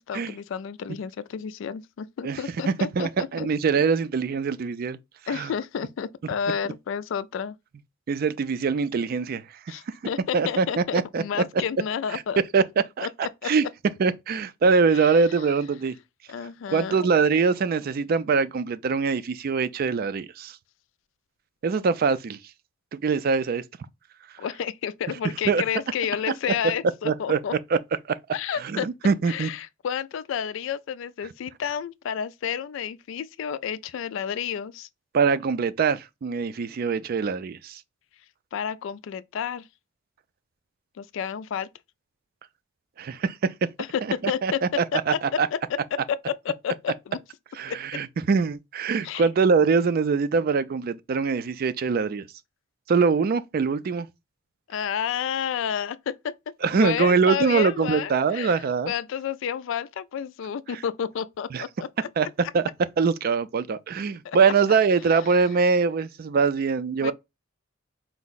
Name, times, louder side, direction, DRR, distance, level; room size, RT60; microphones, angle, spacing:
voice 1, 0.0-3.5 5.3-7.6 9.7-12.4 13.0-13.5 14.9-15.4 16.3-17.1 24.4-27.5 28.3-34.9 38.5-39.7 41.0-41.7 43.8-47.2 47.7-47.8 49.0-49.2 54.7-56.3 56.7-61.9 62.2-62.3 64.2-64.4 67.0-67.1, left 8 dB, 65° left, 0.3 m, -31 dB
voice 2, 2.7-5.0 5.3-5.5 8.1-9.4 10.3-11.2 12.1-12.2 12.5-12.6 13.0-13.1 13.4-13.6 14.0-16.0 16.7-20.5 21.6-22.4 22.9-23.6 25.5-25.6 27.0-27.4 27.7-27.8 28.6-29.5 35.1-37.8 43.0-43.3 44.4-44.7 45.1-45.5 47.6-52.3 52.9-54.1 56.6-58.9 61.5-61.6 62.2-62.3 62.5-62.6 63.0-67.1, right 5 dB, 45° right, 0.3 m, -23 dB
4.5 x 2.1 x 3.9 m
head